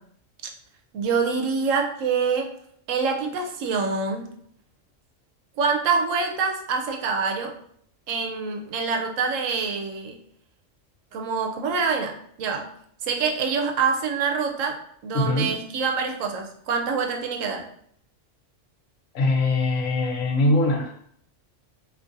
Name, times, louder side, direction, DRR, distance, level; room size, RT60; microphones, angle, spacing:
voice 1, 0.9-2.5 2.9-4.3 5.6-7.5 8.1-10.1 11.1-12.7 13.0-17.6, right 5 dB, 80° right, 3 dB, 1.0 m, -25 dB
voice 2, 15.1-15.5 19.1-20.9, left 2 dB, 90° left, 2 dB, 1.1 m, -22 dB
3.7 x 2.8 x 2.6 m, 0.66 s
omnidirectional pair, 1.3 m